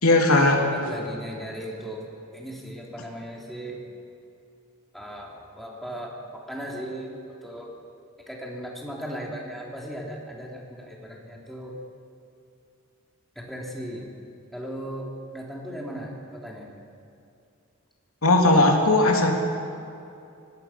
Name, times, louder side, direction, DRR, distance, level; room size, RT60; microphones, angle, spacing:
voice 1, 0.0-0.6 18.2-19.3, left 2 dB, 85° left, 1 dB, 3.1 m, -18 dB
voice 2, 0.6-2.1 2.3-3.8 4.9-7.7 8.3-11.8 13.3-14.1 14.5-16.7, equal, ahead, -2 dB, 3.3 m, -37 dB
24.0 x 18.0 x 6.0 m, 2.6 s
head